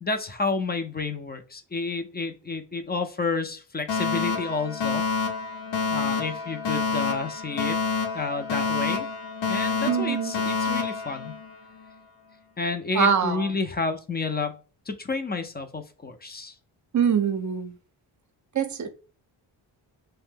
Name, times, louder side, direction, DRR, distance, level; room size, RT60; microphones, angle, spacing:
voice 1, 0.0-5.0 5.9-7.8 8.1-9.1 9.5-11.3 12.6-14.5 14.9-16.5, left 3 dB, 20° left, 0.4 m, -30 dB
Alarm, 3.9-11.9, left 5 dB, 65° left, 0.9 m, -28 dB
voice 2, 9.9-10.3 12.9-13.5 16.9-17.8 18.5-18.9, right 7 dB, 35° right, 0.5 m, -24 dB
2.5 x 2.2 x 3.5 m
supercardioid pair, 45°, 50 cm